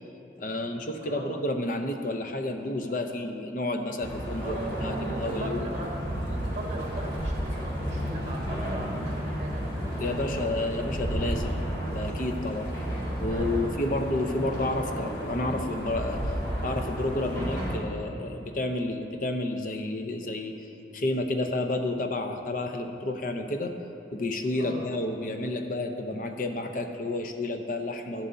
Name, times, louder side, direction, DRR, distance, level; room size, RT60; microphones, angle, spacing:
voice 1, 0.4-5.7 10.0-12.7 13.2-16.4 16.6-20.7 20.9-23.7 24.1-28.3, left 2 dB, 45° left, 5 dB, 0.7 m, -30 dB
voice 2, 1.0-1.4 4.4-10.0 10.3-10.9 13.3-13.8 24.5-24.9, right 1 dB, 35° right, -2 dB, 1.6 m, -39 dB
sound 1, 4.0-17.7, equal, 25° left, 2.2 m, -32 dB
13.0 x 11.0 x 2.7 m, 2.8 s
head